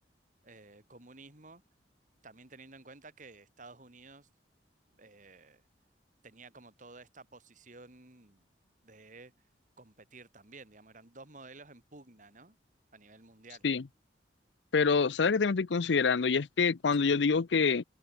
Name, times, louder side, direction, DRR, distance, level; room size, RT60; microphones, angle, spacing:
voice 1, 0.4-1.6 2.2-4.3 4.9-5.6 6.2-8.5 8.8-9.3 9.8-12.6 12.9-13.7 16.9-17.1, right 3 dB, 45° right, 3.3 m, -53 dB
voice 2, 14.7-17.8, left 5 dB, 90° left, 0.6 m, -26 dB
head